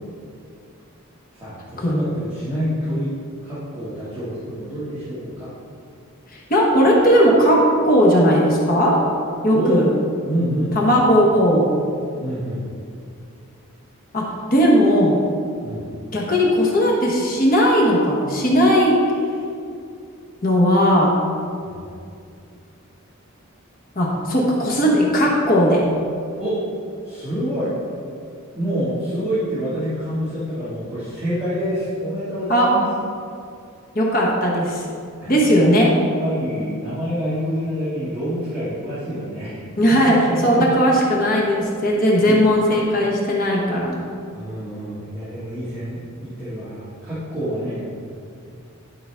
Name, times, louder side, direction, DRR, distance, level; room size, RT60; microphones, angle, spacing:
voice 1, 1.4-3.1 3.4-5.5 9.5-9.8 10.3-10.8 12.2-12.6 15.6-15.9 21.6-21.9 26.4-26.6 27.0-27.7 28.5-32.8 35.2-35.8 36.2-39.6 40.0-40.7 42.2-42.7 44.3-47.9, equal, 10° right, -14 dB, 2.1 m, -27 dB
voice 2, 6.5-9.0 9.4-9.9 10.7-11.7 14.1-15.2 16.1-19.0 20.4-21.1 24.0-25.9 32.5-32.7 33.9-34.8 35.3-35.9 39.8-44.0, equal, 40° left, -3 dB, 1.2 m, -17 dB
12.0 x 5.1 x 3.5 m, 2.4 s
head